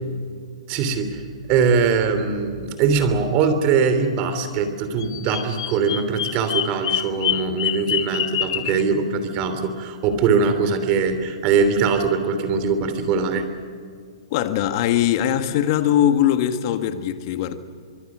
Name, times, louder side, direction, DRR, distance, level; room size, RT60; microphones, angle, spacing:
voice 1, 0.7-1.2 1.5-13.5, right 5 dB, 35° right, 9 dB, 3.2 m, -21 dB
Bird vocalization bird call bird song, 5.0-8.8, left 11 dB, 60° left, 1.1 m, -26 dB
voice 2, 14.3-17.6, left 11 dB, 40° left, 9 dB, 1.8 m, -21 dB
24.0 x 23.5 x 6.3 m, 2.1 s
hypercardioid pair, 145°, 3 cm